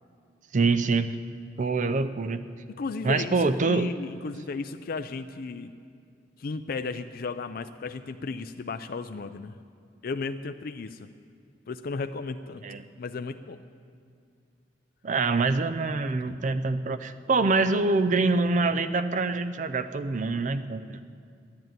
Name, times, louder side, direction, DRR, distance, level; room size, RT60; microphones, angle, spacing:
voice 1, 0.5-1.2 1.6-2.4 3.0-3.9 12.6-12.9 15.0-21.0, right 3 dB, 45° right, 12 dB, 0.5 m, -25 dB
voice 2, 2.8-5.7 6.4-9.5 10.0-11.1 11.7-12.6 13.0-13.6 16.3-16.4, left 4 dB, 55° left, 9 dB, 0.5 m, -34 dB
12.5 x 10.5 x 9.2 m, 2.3 s
head